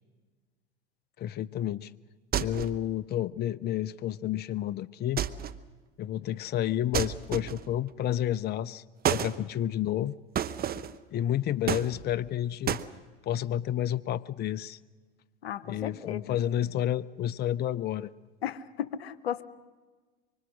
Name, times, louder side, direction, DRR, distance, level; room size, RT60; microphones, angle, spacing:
voice 1, 1.2-1.9 2.4-5.2 6.0-10.1 11.1-12.8 13.2-14.8 15.6-18.1, left 11 dB, 35° left, 20 dB, 0.6 m, -30 dB
sound 1, 2.3-2.9 5.2-5.7 6.9-7.8 9.0-9.4 10.4-11.0 11.7-12.3 12.7-12.9, right 10 dB, 30° right, 0.9 m, -30 dB
voice 2, 15.4-16.4 18.4-19.4, left 9 dB, 85° left, 15 dB, 0.9 m, -35 dB
25.0 x 24.5 x 6.4 m, 1.4 s
hypercardioid pair, 85°, 30 cm